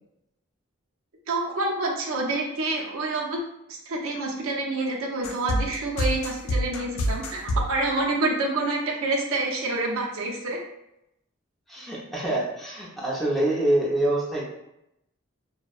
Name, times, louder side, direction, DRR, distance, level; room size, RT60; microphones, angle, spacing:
voice 1, 1.3-3.4 3.7-10.6, right 2 dB, 75° right, -1 dB, 0.5 m, -27 dB
sound 1, 5.2-7.7, equal, 65° left, 0.3 m, -26 dB
voice 2, 11.7-14.4, right 1 dB, ahead, -6 dB, 0.5 m, -25 dB
2.6 x 2.1 x 2.3 m, 0.84 s
head